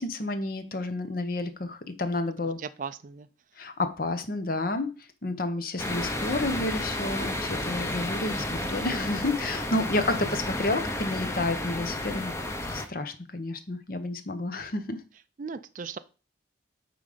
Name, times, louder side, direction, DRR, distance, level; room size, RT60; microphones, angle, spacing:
voice 1, 0.0-2.6 3.6-4.9 5.2-12.4 12.7-15.0, left 2 dB, 50° left, 0.9 m, -30 dB
voice 2, 2.6-3.3 9.7-10.3 15.4-16.0, right 5 dB, 45° right, 0.4 m, -38 dB
sound 1, 5.8-12.9, left 1 dB, 15° left, 0.8 m, -32 dB
9.2 x 3.9 x 5.0 m
head